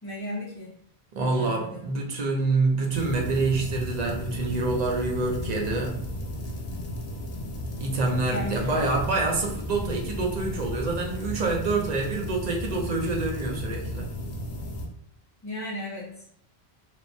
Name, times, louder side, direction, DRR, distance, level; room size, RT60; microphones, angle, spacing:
voice 1, 0.0-0.8 1.2-1.9 8.3-8.7 15.4-16.2, left 1 dB, 20° left, -10 dB, 0.5 m, -35 dB
voice 2, 1.1-6.0 7.7-14.1, right 3 dB, 50° right, 0 dB, 0.6 m, -27 dB
sound 1, 2.9-14.9, left 1 dB, 75° left, 0.8 m, -34 dB
sound 2, 8.3-11.3, left 1 dB, 80° right, 1.0 m, -40 dB
3.0 x 2.0 x 2.6 m, 0.66 s
omnidirectional pair, 1.1 m